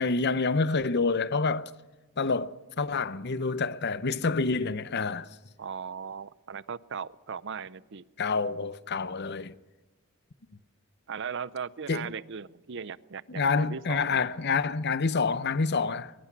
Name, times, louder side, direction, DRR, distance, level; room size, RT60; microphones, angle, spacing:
voice 1, 0.0-1.7 2.2-5.3 8.2-9.5 11.9-12.1 13.3-16.1, left 4 dB, 50° left, 0.7 m, -27 dB
voice 2, 5.6-8.0 11.1-14.2, right 6 dB, 55° right, 0.6 m, -38 dB
23.0 x 22.0 x 6.1 m
head